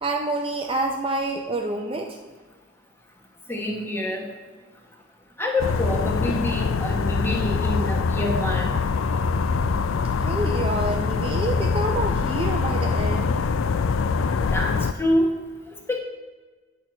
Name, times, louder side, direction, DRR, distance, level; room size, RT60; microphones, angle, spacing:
voice 1, 0.0-2.2 10.2-13.3, right 2 dB, 25° right, 2 dB, 0.5 m, -27 dB
voice 2, 3.5-4.3 5.4-8.8 14.5-15.3 15.9-16.0, left 1 dB, 10° left, 0 dB, 1.1 m, -26 dB
sound 1, 5.6-14.9, left 4 dB, 85° left, 0.4 m, -24 dB
8.8 x 4.6 x 6.0 m, 1.3 s
head